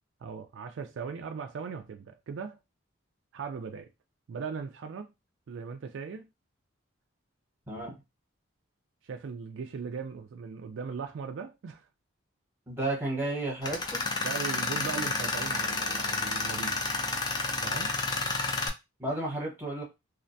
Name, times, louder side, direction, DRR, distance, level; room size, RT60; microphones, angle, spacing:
voice 1, 0.2-2.6 3.3-3.9 4.3-5.1 5.5-6.3 9.0-11.9 14.2-16.8 17.6-17.9, right 5 dB, 65° right, 0.3 m, -38 dB
voice 2, 12.7-14.0 19.0-19.8, right 2 dB, 10° right, 0.9 m, -32 dB
Tools, 13.6-18.7, left 3 dB, 20° left, 0.4 m, -30 dB
2.4 x 2.2 x 2.6 m
head